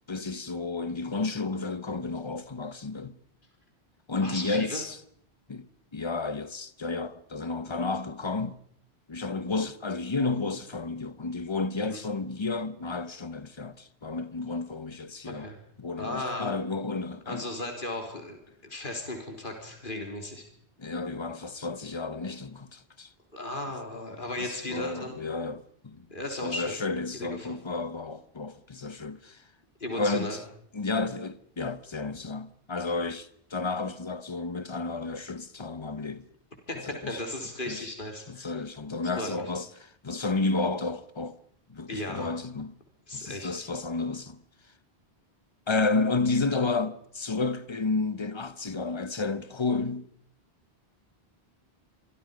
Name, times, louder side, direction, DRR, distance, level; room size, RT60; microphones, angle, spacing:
voice 1, 0.1-3.2 4.1-5.0 5.5-8.6 9.1-15.5 15.8-17.4 20.8-23.1 24.4-26.1 26.4-29.4 29.9-30.4 30.7-36.2 36.7-37.2 37.7-37.9 38.3-41.4 41.7-42.7 43.1-44.4 45.7-50.1, left 3 dB, 25° left, 1.0 m, -31 dB
voice 2, 4.2-4.8 11.8-12.0 15.2-15.6 16.0-16.5 17.3-18.4 18.6-20.4 23.3-25.1 26.1-26.8 27.1-27.6 29.8-30.4 36.7-38.6 39.2-39.4 41.9-42.3 43.1-43.7, left 1 dB, 50° left, 3.9 m, -36 dB
26.5 x 23.5 x 5.2 m
omnidirectional pair, 1.1 m